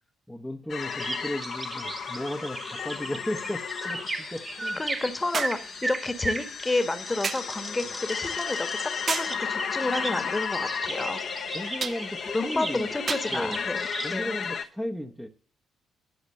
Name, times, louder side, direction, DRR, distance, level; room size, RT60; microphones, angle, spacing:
voice 1, 0.3-4.8 7.8-8.0 11.5-13.0 13.3-13.6 14.0-15.3, left 1 dB, ahead, 0 dB, 1.1 m, -35 dB
sound 1, 0.7-14.6, left 6 dB, 50° left, 1.1 m, -34 dB
sound 2, 0.8-14.2, right 2 dB, 25° right, 1.7 m, -37 dB
voice 2, 4.8-8.7 8.9-11.2 12.3-14.3, left 2 dB, 20° left, 10 dB, 1.5 m, -30 dB
sound 3, 5.3-5.7 7.2-7.5 9.1-9.4 11.8-12.1 13.1-13.4 14.4-14.5, right 6 dB, 40° right, 0.4 m, -31 dB
11.5 x 6.5 x 6.5 m, 0.41 s
figure-of-eight pair, 45°, 0 cm